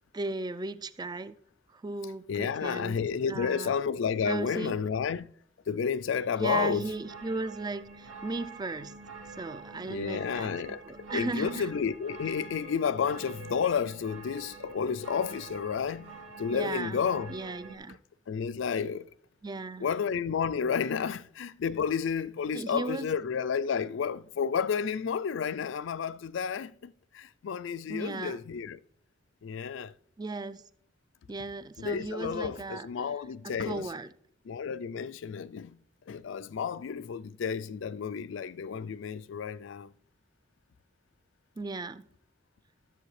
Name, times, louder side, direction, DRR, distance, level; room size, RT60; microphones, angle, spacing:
voice 1, 0.1-1.4 1.7-3.0 3.3-3.7 4.2-4.8 6.4-8.9 9.3-11.7 16.5-17.0 17.3-18.0 19.4-19.9 22.5-23.1 27.9-28.4 30.2-30.6 31.3-33.1 33.4-34.1 41.6-42.1, right 3 dB, 20° right, 0.4 m, -36 dB
voice 2, 2.3-5.3 5.7-6.8 9.9-10.8 11.1-16.1 16.4-17.3 18.3-19.1 19.8-28.8 29.4-29.9 31.8-33.9 34.5-35.8 36.1-39.9, left 6 dB, 65° left, 0.4 m, -31 dB
sound 1, 6.5-17.8, right 4 dB, 80° right, 2.4 m, -47 dB
13.0 x 7.6 x 3.3 m
head